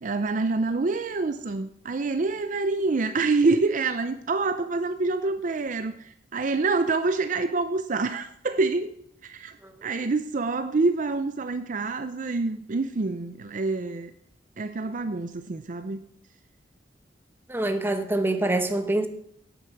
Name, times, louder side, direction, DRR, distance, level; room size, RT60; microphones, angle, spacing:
voice 1, 0.0-9.6 9.8-14.1 14.6-16.0, right 3 dB, 45° right, 9 dB, 0.5 m, -26 dB
voice 2, 17.5-19.1, right 2 dB, 15° right, 6 dB, 1.0 m, -25 dB
9.0 x 8.0 x 6.4 m, 0.69 s
head